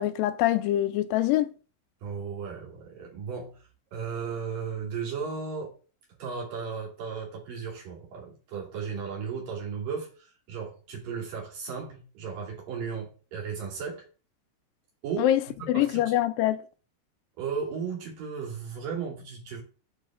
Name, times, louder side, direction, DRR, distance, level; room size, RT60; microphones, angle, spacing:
voice 1, 0.0-1.5 15.2-15.4 15.7-16.6, left 13 dB, 85° left, 2.3 m, -24 dB
voice 2, 2.0-3.6 3.9-5.7 6.2-14.1 15.0-15.3 15.6-16.2 17.4-19.6, right 6 dB, 70° right, 4.3 m, -35 dB
8.9 x 5.0 x 3.6 m
omnidirectional pair, 4.0 m